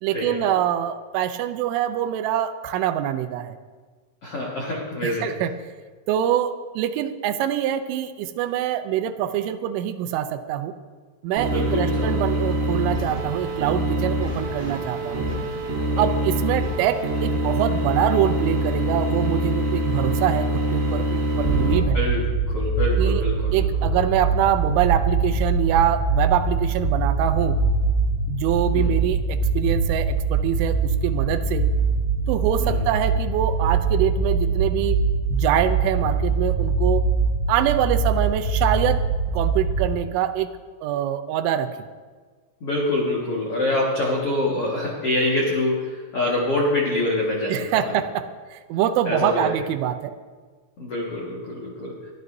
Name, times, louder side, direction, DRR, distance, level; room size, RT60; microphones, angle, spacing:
voice 1, 0.0-3.6 5.0-5.5 6.1-10.7 11.2-15.2 16.0-22.0 23.0-23.2 23.5-27.6 28.3-31.7 32.3-35.0 35.3-37.1 37.5-39.0 39.3-40.5 40.8-41.8 47.5-50.1, right 10 dB, 80° right, 9 dB, 3.0 m, -24 dB
voice 2, 4.2-5.3 11.5-12.1 15.9-16.1 21.6-23.7 28.7-29.1 32.6-32.9 42.6-47.9 49.0-49.5 50.8-52.0, left 2 dB, 75° left, -3 dB, 1.3 m, -26 dB
sound 1, 11.4-21.8, right 1 dB, 30° right, 3.8 m, -24 dB
sound 2, 21.4-39.8, right 4 dB, 50° left, 4.8 m, -23 dB
23.5 x 13.5 x 2.7 m, 1.5 s
omnidirectional pair, 5.7 m